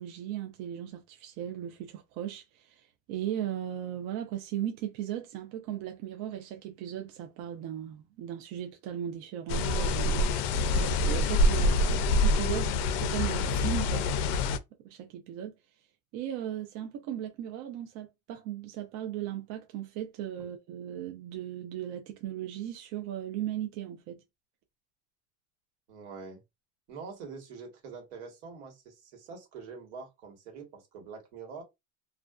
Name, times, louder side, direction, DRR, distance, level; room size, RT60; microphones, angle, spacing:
voice 1, 0.0-10.3 10.7-12.7 13.0-14.1 14.8-15.5 16.1-24.2, right 11 dB, 55° right, 0.5 m, -37 dB
sound 1, 9.5-14.6, left 2 dB, 65° left, 0.5 m, -26 dB
voice 2, 11.6-12.1 20.4-20.5 25.9-26.4 26.9-31.6, right 5 dB, 85° right, 1.3 m, -45 dB
2.5 x 2.2 x 2.3 m
cardioid pair, 140°, 34 cm